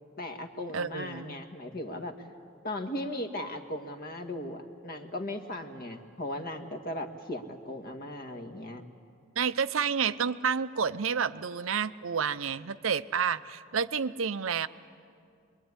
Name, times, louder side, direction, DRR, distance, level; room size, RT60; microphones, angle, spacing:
voice 1, 0.2-2.2 2.6-8.8, left 1 dB, 45° left, 5 dB, 1.8 m, -37 dB
voice 2, 0.7-1.4 9.4-14.7, right 6 dB, 75° right, 14 dB, 0.7 m, -30 dB
26.0 x 22.5 x 9.8 m, 2.3 s
head